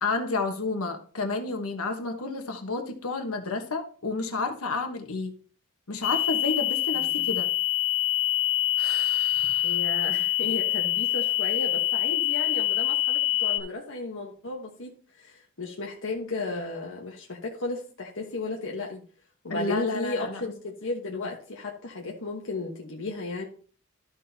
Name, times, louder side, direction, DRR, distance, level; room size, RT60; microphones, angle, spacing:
voice 1, 0.0-5.3 5.9-7.5 8.8-9.7 19.5-20.4, left 3 dB, 90° left, 1.3 m, -31 dB
sound 1, 6.0-13.6, left 14 dB, 35° left, 0.8 m, -25 dB
voice 2, 6.9-7.2 9.6-19.0 19.4-23.5, left 3 dB, 65° left, 1.3 m, -34 dB
13.0 x 6.4 x 2.8 m
head